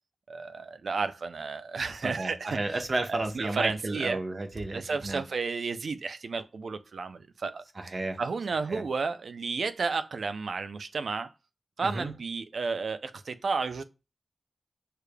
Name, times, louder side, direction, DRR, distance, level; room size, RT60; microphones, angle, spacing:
voice 1, 0.3-2.6 3.1-4.2 4.7-11.3 11.8-13.8, right 4 dB, 85° right, 0.5 m, -32 dB
voice 2, 2.0-5.2 7.8-8.2 8.7-8.8 11.8-12.1, right 2 dB, 45° right, 0.8 m, -32 dB
6.6 x 3.3 x 2.2 m
wide cardioid pair, 115°, 0 cm